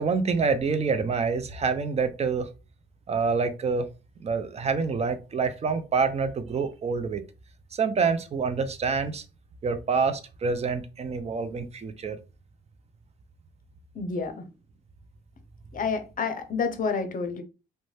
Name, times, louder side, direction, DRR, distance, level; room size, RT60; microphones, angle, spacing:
voice 1, 0.0-2.5 3.1-3.9 4.2-7.2 7.7-9.2 9.6-12.2, right 5 dB, 35° right, 0.5 m, -27 dB
voice 2, 13.9-14.5 15.7-17.4, left 5 dB, 45° left, 0.6 m, -29 dB
2.6 x 2.2 x 3.2 m
cardioid pair, 90°, 20 cm